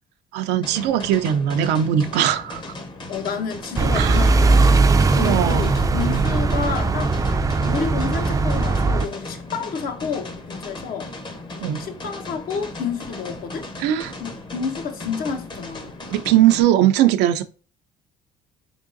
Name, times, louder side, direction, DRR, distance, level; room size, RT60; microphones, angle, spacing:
voice 1, 0.3-2.6 3.9-4.2 5.2-5.7 11.6-11.8 13.8-14.1 16.1-17.4, right 11 dB, 90° right, 0.4 m, -19 dB
sound 1, 0.6-16.6, left 2 dB, 30° left, 0.8 m, -37 dB
voice 2, 3.1-4.8 5.1-7.2 7.6-11.1 11.8-13.7 14.2-16.0, left 6 dB, 60° left, 0.8 m, -30 dB
sound 2, 3.8-9.1, right 3 dB, 20° right, 0.3 m, -19 dB
3.7 x 3.6 x 2.5 m
cardioid pair, 110°, 17 cm